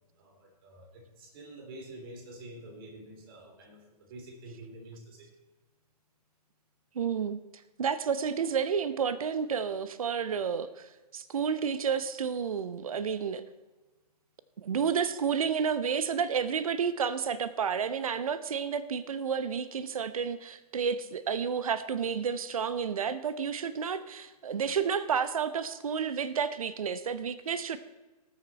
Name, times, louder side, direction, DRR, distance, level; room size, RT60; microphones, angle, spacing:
voice 1, 0.2-3.8 4.1-5.3 25.9-26.0, right 1 dB, 35° right, 2 dB, 3.4 m, -47 dB
voice 2, 6.9-7.4 7.8-13.4 14.6-27.8, right 6 dB, 55° right, 14 dB, 0.8 m, -31 dB
19.0 x 7.2 x 4.4 m, 1.2 s
figure-of-eight pair, 130°, 21 cm